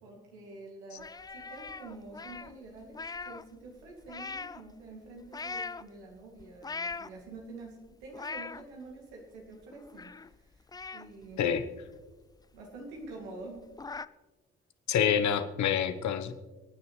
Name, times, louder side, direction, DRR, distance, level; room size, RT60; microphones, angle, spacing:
voice 1, 0.0-10.7 10.9-11.4 12.5-13.7, right 2 dB, 85° right, -1 dB, 2.5 m, -47 dB
sound 1, 1.0-3.5 3.8-4.7 5.2-5.8 6.4-7.4 7.9-8.6 9.1-9.2 9.5-10.3 10.7-12.2 12.6-12.7 13.0-13.1 13.4-14.1, left 4 dB, 15° left, 0.4 m, -41 dB
voice 2, 14.9-16.3, left 8 dB, 60° left, 10 dB, 1.1 m, -27 dB
27.0 x 9.5 x 3.2 m, 1.2 s
hypercardioid pair, 45°, 33 cm